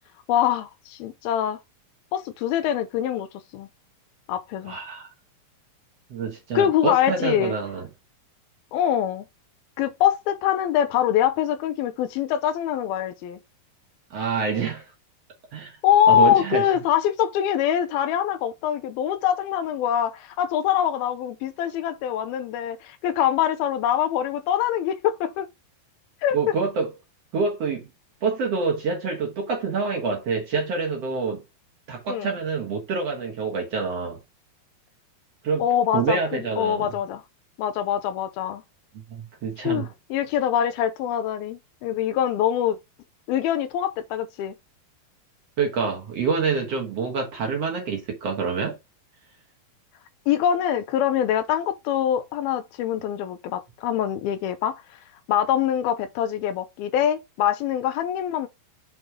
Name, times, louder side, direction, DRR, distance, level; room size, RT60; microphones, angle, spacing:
voice 1, 0.3-1.6 2.1-3.3 3.5-3.7 4.3-4.7 6.5-7.5 8.7-9.3 9.8-13.4 15.8-25.5 26.2-26.4 32.1-32.3 35.6-37.2 37.6-38.6 39.6-42.8 43.3-44.6 50.3-54.8 55.3-58.5, left 10 dB, 85° left, 2.7 m, -24 dB
voice 2, 4.7-5.1 6.1-7.9 14.1-14.9 15.5-15.8 16.1-16.7 26.3-26.9 27.3-27.9 28.2-31.4 31.9-34.2 35.4-35.6 35.9-36.9 39.1-39.9 45.6-48.8, right 5 dB, 55° right, 2.0 m, -26 dB
6.3 x 4.2 x 4.8 m
omnidirectional pair, 4.4 m